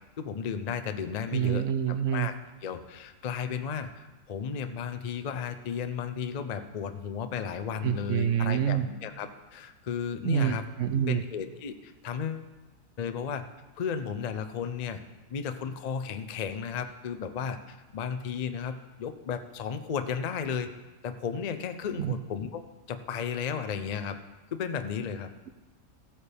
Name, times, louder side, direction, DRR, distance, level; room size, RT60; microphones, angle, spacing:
voice 1, 0.2-1.6 2.1-2.3 2.6-10.7 11.0-12.5 13.0-13.4 13.8-15.0 15.3-20.7 21.0-22.6 22.9-24.2 24.5-25.3, left 7 dB, 85° left, 8 dB, 0.3 m, -34 dB
voice 2, 1.3-2.3 7.8-8.9 10.2-11.2 22.0-22.2, right 9 dB, 65° right, 10 dB, 0.8 m, -27 dB
15.0 x 8.7 x 3.5 m, 1.2 s
omnidirectional pair, 1.6 m